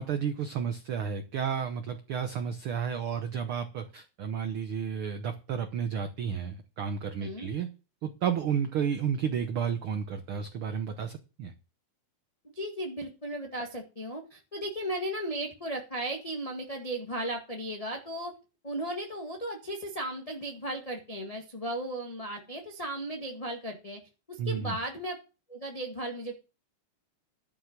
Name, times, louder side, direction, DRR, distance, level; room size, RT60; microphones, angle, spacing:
voice 1, 0.0-7.7 8.0-11.5 24.4-24.8, right 7 dB, 60° right, 7 dB, 1.5 m, -32 dB
voice 2, 12.5-18.3 18.6-24.0 24.3-25.2 25.5-26.4, right 1 dB, 15° left, 1 dB, 1.2 m, -36 dB
12.0 x 5.7 x 7.4 m, 0.31 s
omnidirectional pair, 3.5 m